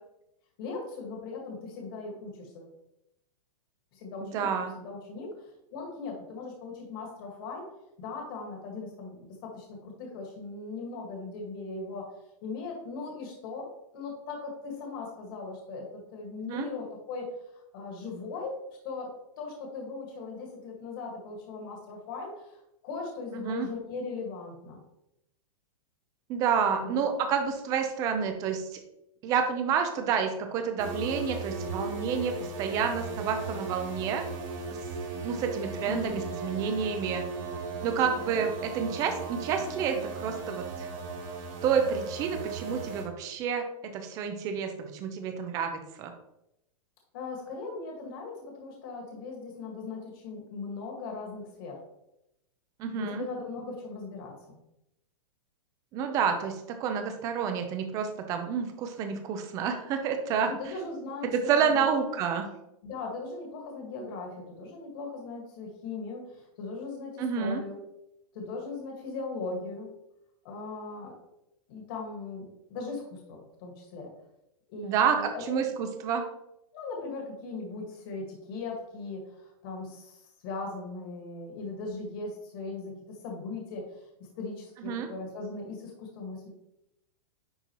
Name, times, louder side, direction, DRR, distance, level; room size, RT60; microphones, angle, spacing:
voice 1, 0.6-2.7 3.9-5.3 5.7-7.7 8.0-12.0 12.4-13.7 13.9-17.3 17.7-18.6 18.8-19.1 19.4-24.8 26.8-27.0 35.8-36.2 47.1-51.8 53.0-54.6 60.5-62.0 62.8-67.8 68.3-69.9 70.4-71.1 71.7-74.1 74.7-75.6 76.7-83.9 84.4-86.5, left 3 dB, 40° left, 0 dB, 1.8 m, -39 dB
voice 2, 4.2-4.7 16.4-16.7 23.4-23.7 26.3-28.8 29.2-34.3 35.2-37.2 37.8-40.9 41.6-43.6 43.9-46.1 52.8-53.2 55.9-60.5 61.3-62.4 67.2-67.6 74.8-76.2 84.8-85.1, right 7 dB, 20° right, 6 dB, 0.6 m, -29 dB
sound 1, 30.8-43.0, right 3 dB, 55° right, 2.7 m, -37 dB
10.0 x 4.2 x 3.0 m, 0.84 s
supercardioid pair, 175°, 18 cm